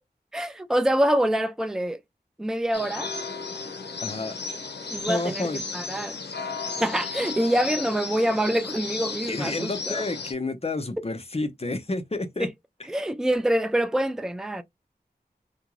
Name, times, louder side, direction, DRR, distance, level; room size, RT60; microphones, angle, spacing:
voice 1, 0.3-2.0 2.4-3.1 4.9-5.5 5.7-6.2 6.8-10.0 12.4-12.5 12.9-14.6, right 1 dB, 5° right, 0.4 m, -25 dB
sound 1, 2.7-10.3, left 4 dB, 85° left, 0.7 m, -34 dB
voice 2, 4.0-4.4 5.1-5.6 9.3-12.5, left 2 dB, 35° left, 0.7 m, -30 dB
2.6 x 2.3 x 3.0 m
wide cardioid pair, 50°, 17 cm